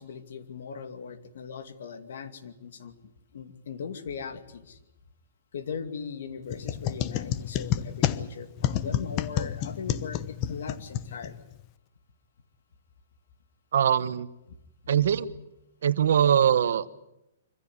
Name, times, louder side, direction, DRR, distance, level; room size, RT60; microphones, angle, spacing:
voice 1, 0.0-3.0 3.3-4.8 5.5-11.4, left 6 dB, 70° left, 8 dB, 2.5 m, -39 dB
sound 1, 6.5-11.6, left 11 dB, 30° left, 0.9 m, -30 dB
voice 2, 13.7-14.3 14.9-15.3 15.8-16.9, right 9 dB, 70° right, 14 dB, 1.2 m, -22 dB
25.0 x 15.5 x 9.7 m, 0.88 s
hypercardioid pair, 155°, 0 cm